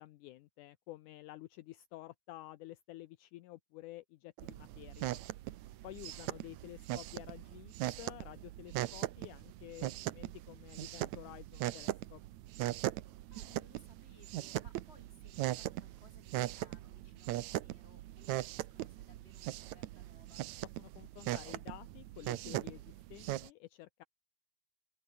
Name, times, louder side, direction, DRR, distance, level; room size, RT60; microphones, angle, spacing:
voice 1, 0.0-5.2 5.8-12.2 20.8-24.0, left 16 dB, 75° left, 1.9 m, -51 dB
sound 1, 4.4-23.5, right 15 dB, 75° right, 1.7 m, -40 dB
voice 2, 6.1-6.4 13.3-20.5, left 2 dB, 15° left, 5.8 m, -64 dB
omnidirectional pair, 4.4 m